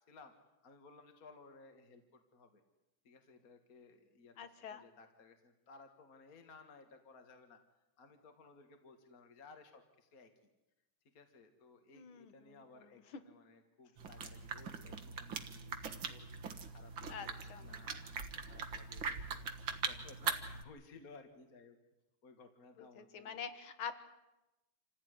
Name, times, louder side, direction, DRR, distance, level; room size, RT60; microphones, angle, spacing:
voice 1, 0.6-2.6 3.0-7.6 8.0-10.3 11.1-19.6 19.9-21.8 22.2-23.3, left 4 dB, 45° left, 6 dB, 2.2 m, -59 dB
voice 2, 4.4-4.8 11.9-12.9 17.1-18.0 22.8-23.9, left 7 dB, 80° left, 10 dB, 2.3 m, -47 dB
sound 1, 14.0-20.6, right 5 dB, 70° right, 2.3 m, -42 dB
27.5 x 15.5 x 9.7 m, 0.98 s
omnidirectional pair, 2.3 m